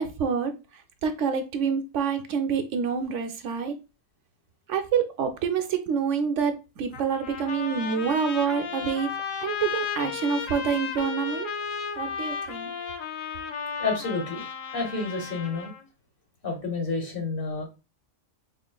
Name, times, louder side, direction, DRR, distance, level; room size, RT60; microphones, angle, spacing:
voice 1, 0.0-3.8 4.7-9.1 9.4-11.5 12.0-12.7, right 6 dB, 70° right, 0.9 m, -27 dB
Trumpet, 6.9-15.8, left 6 dB, 75° left, 1.1 m, -34 dB
voice 2, 13.8-15.7 16.4-17.7, left 4 dB, 45° left, 1.4 m, -30 dB
3.8 x 3.8 x 2.3 m
omnidirectional pair, 1.3 m